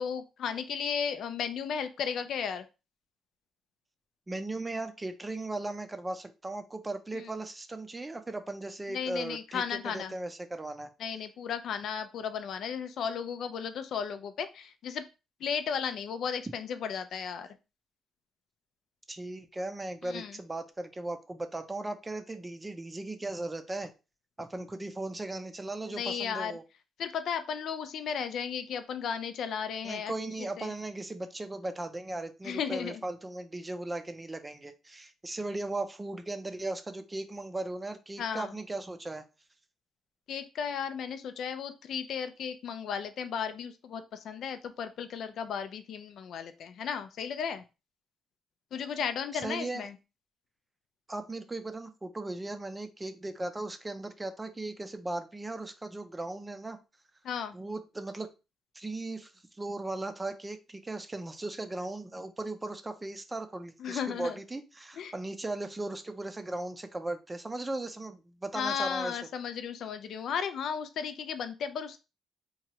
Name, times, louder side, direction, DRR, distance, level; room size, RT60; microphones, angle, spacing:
voice 1, 0.0-2.6 7.1-7.3 8.9-10.1 11.0-15.1 15.4-17.6 20.0-20.4 25.9-26.6 27.0-30.1 30.4-30.7 32.4-33.0 38.2-38.5 40.3-47.6 48.7-50.0 57.2-57.6 63.8-64.4 65.0-65.1 68.5-72.0, left 7 dB, 70° left, 10 dB, 0.4 m, -35 dB
voice 2, 4.3-10.9 19.1-23.9 24.4-26.6 29.8-39.2 49.3-49.8 51.1-56.8 57.5-58.3 58.7-59.3 59.6-69.2, right 2 dB, 20° right, 9 dB, 0.5 m, -37 dB
2.9 x 2.3 x 2.8 m, 0.29 s
cardioid pair, 90°, 0 cm